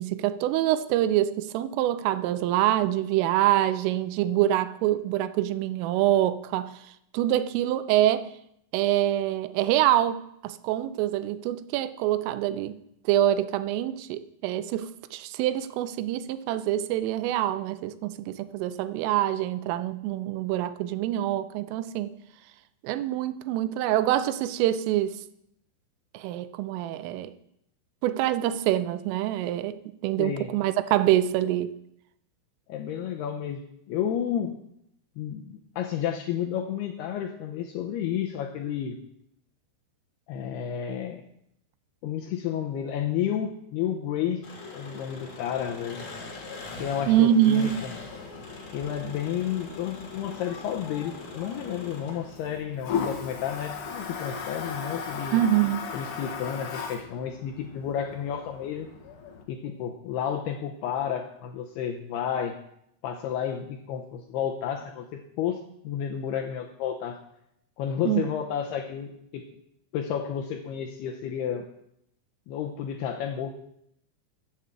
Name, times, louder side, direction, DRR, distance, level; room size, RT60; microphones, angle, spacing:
voice 1, 0.0-6.8 7.1-8.3 8.7-12.8 13.1-22.1 22.8-25.2 26.1-27.3 28.0-31.7 47.1-47.8 55.3-55.9 68.1-68.3, right 12 dB, 90° right, 3.3 m, -25 dB
voice 2, 30.2-30.5 32.7-34.6 35.2-39.0 40.3-41.2 42.0-44.4 44.7-46.0 46.8-47.7 48.7-55.4 55.9-58.9 59.5-62.6 63.0-67.2 67.8-69.5 69.9-71.7 72.5-73.5, left 9 dB, 85° left, 2.3 m, -31 dB
Engine, 44.4-52.6, left 3 dB, 45° left, 3.8 m, -42 dB
Toilet flush, 47.9-59.4, left 6 dB, 60° left, 2.1 m, -37 dB
11.0 x 8.1 x 7.3 m
omnidirectional pair, 5.6 m